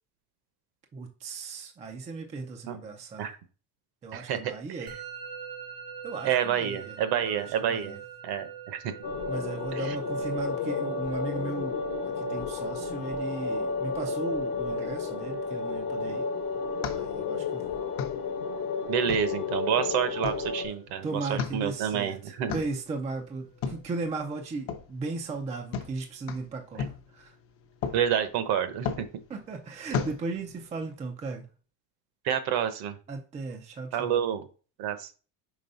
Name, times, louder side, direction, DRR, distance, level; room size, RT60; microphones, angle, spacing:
voice 1, 0.9-3.3 4.0-4.9 6.0-6.9 7.2-8.0 9.3-16.3 16.9-17.8 21.0-26.8 27.1-27.3 29.3-31.5 33.1-34.2, right 3 dB, 15° right, 0.4 m, -36 dB
voice 2, 4.1-5.0 6.2-8.0 8.2-8.9 9.7-10.0 18.9-22.5 27.9-28.9 32.2-32.9 33.9-34.5 34.8-35.1, right 9 dB, 55° right, 1.0 m, -29 dB
Musical instrument, 4.9-23.8, right 8 dB, 85° right, 2.6 m, -47 dB
sound 1, 9.0-20.7, left 4 dB, 55° left, 1.0 m, -32 dB
sound 2, 16.0-30.9, left 6 dB, 30° left, 0.7 m, -38 dB
5.4 x 3.3 x 5.4 m
cardioid pair, 160°, 47 cm